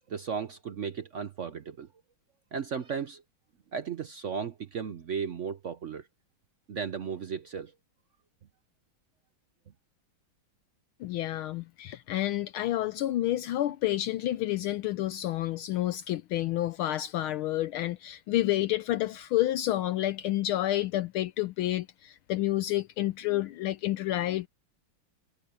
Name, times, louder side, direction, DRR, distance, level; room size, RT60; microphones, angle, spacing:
voice 1, 0.1-1.9 2.5-3.2 3.7-6.1 6.7-7.7, right 6 dB, 70° right, 0.7 m, -35 dB
voice 2, 11.0-24.5, left 14 dB, 75° left, 1.5 m, -29 dB
omnidirectional pair, 2.4 m